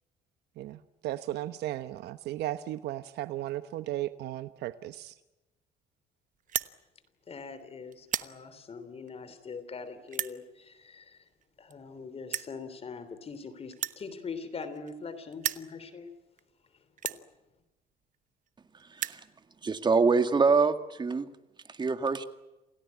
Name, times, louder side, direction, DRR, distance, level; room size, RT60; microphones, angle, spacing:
voice 1, 0.6-5.2, right 14 dB, 75° right, 12 dB, 1.0 m, -35 dB
sound 1, 6.4-6.7 7.4-7.6 7.9-8.3 9.1-9.2 10.1-10.4 11.4-11.5 11.7-11.8 12.3-12.5 13.7-15.0 15.3-15.7 16.4-16.5 17.0-17.2 18.1-18.2 18.5-18.6 18.8-19.2, right 10 dB, 50° right, 1.2 m, -34 dB
voice 2, 7.3-11.2 11.6-16.1, left 5 dB, 35° left, 12 dB, 3.3 m, -42 dB
voice 3, 19.6-21.3 21.7-22.2, right 4 dB, 25° right, 10 dB, 2.1 m, -25 dB
28.5 x 17.5 x 9.6 m, 1.0 s
cardioid pair, 110°, 17 cm